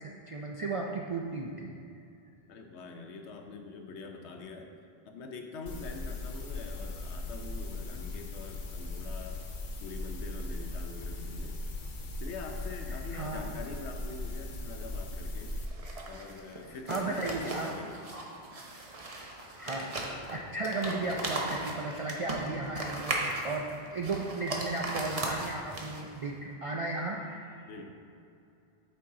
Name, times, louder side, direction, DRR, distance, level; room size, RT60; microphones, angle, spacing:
voice 1, 0.3-1.7 13.1-13.4 16.9-17.7 19.6-19.9 20.3-27.5, right 3 dB, 60° right, -1 dB, 0.3 m, -35 dB
voice 2, 2.5-4.7 5.0-9.4 9.7-11.6 12.2-15.6 16.1-18.0 27.7-27.9, left 3 dB, 85° left, 4 dB, 1.0 m, -44 dB
sound 1, 5.7-15.7, left 2 dB, 55° left, 0.9 m, -38 dB
sound 2, 15.7-26.2, right 2 dB, 35° right, 0.8 m, -37 dB
8.4 x 4.6 x 3.7 m, 2.6 s
omnidirectional pair, 1.1 m